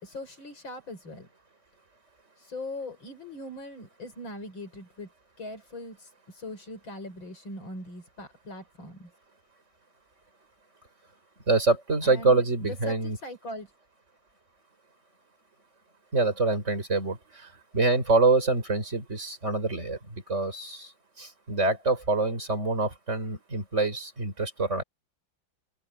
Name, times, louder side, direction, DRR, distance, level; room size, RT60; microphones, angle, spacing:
voice 1, 0.0-1.3 2.4-5.1 5.4-9.1 12.0-13.7, left 1 dB, 75° left, 6.9 m, -41 dB
voice 2, 11.5-13.2 16.1-20.9 21.2-24.8, right 3 dB, 35° right, 5.4 m, -26 dB
open air
omnidirectional pair, 2.1 m